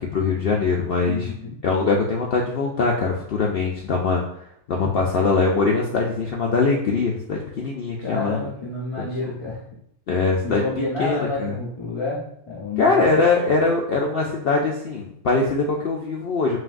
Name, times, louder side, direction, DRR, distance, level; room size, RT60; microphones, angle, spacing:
voice 1, 0.0-1.3 1.6-4.2 4.7-8.5 9.0-9.3 10.1-10.6 11.0-11.5 12.8-16.6, left 4 dB, 75° left, -1 dB, 0.5 m, -22 dB
voice 2, 1.0-1.6 8.0-9.7 10.4-13.1, left 3 dB, 30° left, -7 dB, 0.7 m, -29 dB
5.7 x 2.6 x 2.5 m, 0.76 s
omnidirectional pair, 1.6 m